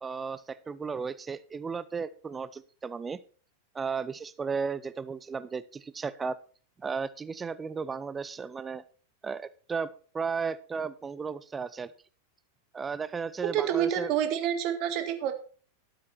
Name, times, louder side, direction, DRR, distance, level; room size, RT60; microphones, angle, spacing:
voice 1, 0.0-3.2 3.7-6.4 6.8-8.8 9.2-11.9 12.7-14.1, right 5 dB, 15° right, 17 dB, 0.4 m, -34 dB
voice 2, 13.5-15.3, right 10 dB, 40° right, 8 dB, 1.8 m, -28 dB
12.0 x 8.6 x 4.4 m, 0.42 s
figure-of-eight pair, 90°, 0 cm